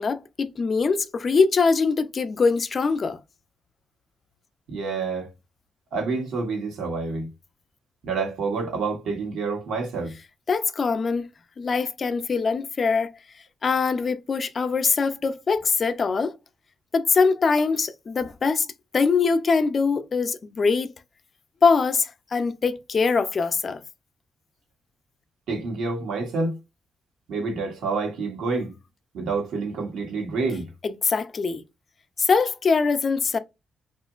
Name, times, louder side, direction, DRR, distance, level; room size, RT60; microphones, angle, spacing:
voice 1, 0.0-3.2 10.5-11.3 11.6-13.1 13.6-16.4 16.9-18.7 18.9-20.9 21.6-23.8 30.8-31.6 32.2-33.4, left 4 dB, 45° left, 0.4 m, -23 dB
voice 2, 4.7-5.3 5.9-7.3 8.0-10.1 25.5-26.5 27.3-28.7 29.1-30.7, right 4 dB, 85° right, 1.1 m, -28 dB
2.9 x 2.4 x 2.4 m
cardioid pair, 75°, 0 cm